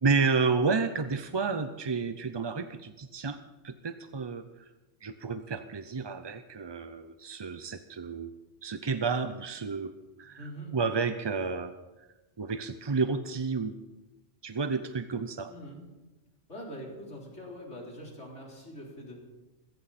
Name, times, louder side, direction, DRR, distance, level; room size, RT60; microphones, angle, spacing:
voice 1, 0.0-4.4 5.0-8.3 8.6-9.9 10.2-11.7 12.4-13.7 14.4-15.5, right 4 dB, 35° right, 10 dB, 0.5 m, -31 dB
voice 2, 10.4-10.8 15.5-15.8 16.5-19.2, equal, 85° left, -2 dB, 4.4 m, -43 dB
21.0 x 16.0 x 4.2 m, 1.1 s
omnidirectional pair, 1.2 m